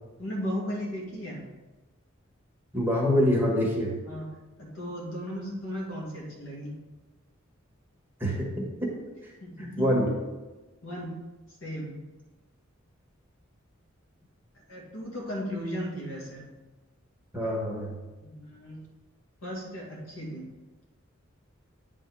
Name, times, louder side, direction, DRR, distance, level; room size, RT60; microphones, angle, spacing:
voice 1, 0.2-1.4 4.0-4.3 4.6-6.8 9.4-9.9 10.8-11.2 11.6-11.9 14.7-16.5 18.2-18.8 19.4-20.5, equal, 80° left, -3 dB, 2.3 m, -36 dB
voice 2, 2.7-4.0 8.2-8.5 8.8-8.9 9.8-10.1 17.3-17.9, equal, 10° right, -3 dB, 1.4 m, -25 dB
9.3 x 3.6 x 4.7 m, 1.2 s
head